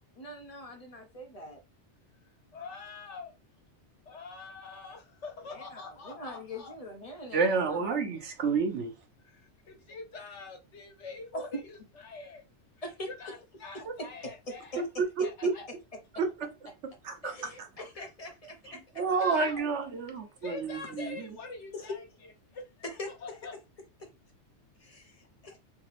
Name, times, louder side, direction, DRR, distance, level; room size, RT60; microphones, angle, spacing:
voice 1, 0.2-1.6 5.4-8.1 11.3-11.5 12.8-13.4 13.7-14.8 17.2-19.0 21.7-22.0 22.8-23.4 24.0-24.1 24.8-25.6, left 1 dB, 35° left, 0.8 m, -43 dB
voice 2, 2.5-3.3 4.1-6.7 9.3-9.4 9.7-11.8 12.0-12.4 13.0-14.8 15.2-15.6 19.0-19.7 20.4-22.0 22.5-22.6 23.1-23.5, left 4 dB, 80° left, 1.3 m, -44 dB
voice 3, 7.3-8.9 13.8-13.9 14.8-14.9 15.2-15.5 16.1-16.5 16.8-17.3 19.0-21.3, right 4 dB, 75° right, 1.1 m, -29 dB
3.4 x 2.9 x 3.2 m
omnidirectional pair, 1.2 m